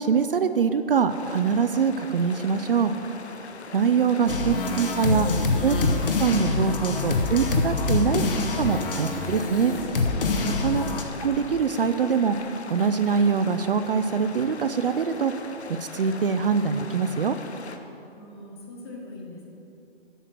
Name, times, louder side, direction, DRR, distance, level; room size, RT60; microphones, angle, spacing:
voice 1, 0.0-2.9 3.7-5.3 5.6-5.8 6.2-8.2 8.6-9.7 10.6-10.8 11.2-12.4 12.7-15.3 15.9-17.4, right 6 dB, 55° right, 9 dB, 0.5 m, -23 dB
sound 1, 1.1-17.8, left 4 dB, 75° left, 0.9 m, -41 dB
sound 2, 4.3-11.0, left 3 dB, 55° left, 1.0 m, -25 dB
voice 2, 10.6-11.1 18.2-19.4, left 2 dB, 25° left, -1 dB, 1.2 m, -42 dB
8.2 x 7.4 x 5.9 m, 2.8 s
hypercardioid pair, 165°, 33 cm